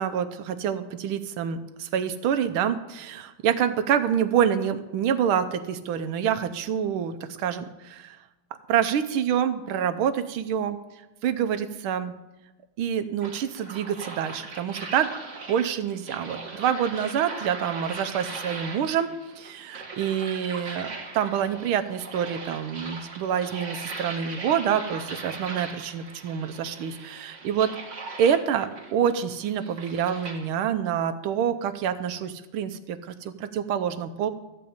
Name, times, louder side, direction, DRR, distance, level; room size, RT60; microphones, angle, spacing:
voice 1, 0.0-8.2 8.7-10.8 11.2-12.1 12.8-15.1 15.5-19.1 19.4-27.7 28.2-34.3, right 8 dB, 85° right, 10 dB, 1.6 m, -27 dB
sound 1, 13.2-30.5, right 3 dB, 35° right, 2.0 m, -39 dB
13.5 x 5.3 x 8.6 m, 1.0 s
omnidirectional pair, 2.3 m